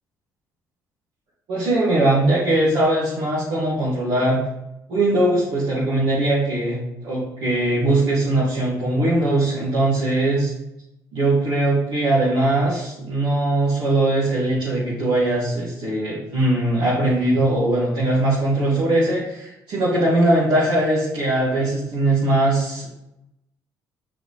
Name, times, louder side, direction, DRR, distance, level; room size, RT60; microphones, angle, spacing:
voice 1, 1.5-4.4 4.9-10.5 11.1-22.9, right 1 dB, 65° right, -9 dB, 2.3 m, -20 dB
6.3 x 6.0 x 3.3 m, 0.87 s
hypercardioid pair, 55°, 9 cm